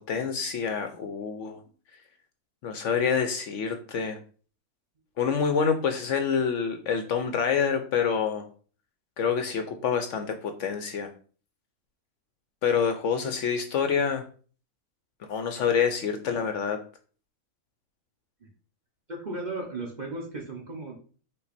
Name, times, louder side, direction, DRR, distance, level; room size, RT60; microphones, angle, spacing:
voice 1, 0.1-1.6 2.6-4.2 5.2-8.5 9.2-11.1 12.6-14.2 15.3-16.8, left 6 dB, 70° left, 7 dB, 0.8 m, -27 dB
voice 2, 19.1-21.0, right 2 dB, 45° right, 0 dB, 0.6 m, -36 dB
5.4 x 2.3 x 4.1 m, 0.41 s
omnidirectional pair, 1.6 m